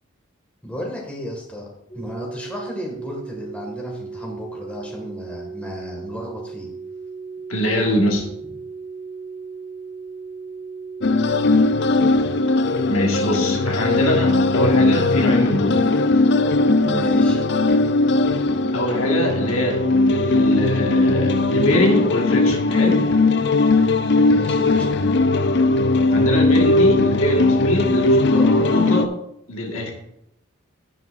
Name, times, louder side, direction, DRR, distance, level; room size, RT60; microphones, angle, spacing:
voice 1, 0.6-1.6 1.9-6.7 16.8-17.4 24.2-24.9, left 1 dB, 5° left, -2 dB, 1.9 m, -33 dB
sound 1, 1.9-21.3, right 5 dB, 35° left, 1.7 m, -36 dB
voice 2, 7.5-8.2 12.9-16.2 18.7-19.8 20.1-23.0 26.1-29.1 29.5-29.9, left 1 dB, 80° left, 0 dB, 1.7 m, -23 dB
sound 2, 11.0-29.1, left 2 dB, 55° left, 0.4 m, -18 dB
16.0 x 5.4 x 2.5 m, 0.79 s
head